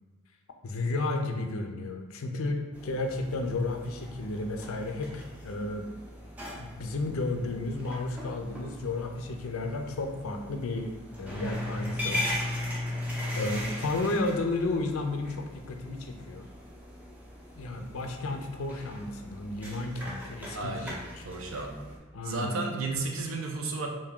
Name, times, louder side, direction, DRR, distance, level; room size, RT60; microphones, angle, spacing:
voice 1, 0.6-5.9 6.6-10.9 11.2-13.0 13.4-16.5 17.5-20.8 21.2-21.3 22.1-22.6, left 2 dB, 80° left, 4 dB, 0.5 m, -33 dB
sound 1, 2.7-22.0, left 1 dB, 5° right, 0.5 m, -39 dB
voice 2, 20.5-21.7 22.2-23.9, right 3 dB, 70° right, 3 dB, 0.6 m, -33 dB
3.4 x 2.6 x 3.6 m, 1.4 s
head